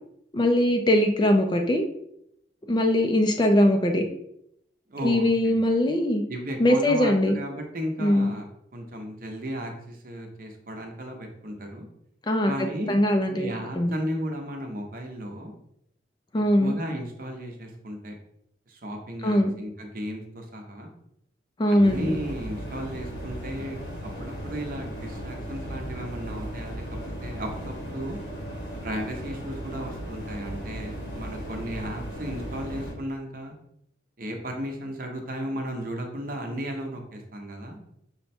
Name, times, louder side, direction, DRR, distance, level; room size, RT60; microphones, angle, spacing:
voice 1, 0.3-1.8 2.7-4.0 5.0-6.2 6.6-7.3 8.0-8.3 12.3-12.5 12.9-13.5 13.7-13.9 16.3-16.7 19.2-19.5 21.6-22.2, left 1 dB, 25° left, 4 dB, 0.4 m, -21 dB
voice 2, 4.9-5.5 6.3-8.5 8.7-11.9 12.5-12.9 13.3-15.5 16.6-18.2 18.7-20.9 21.7-28.2 28.8-33.5 34.2-37.8, equal, 50° right, 3 dB, 0.8 m, -35 dB
sound 1, 21.8-32.9, equal, 65° left, 1.0 m, -36 dB
5.6 x 2.1 x 4.2 m, 0.76 s
head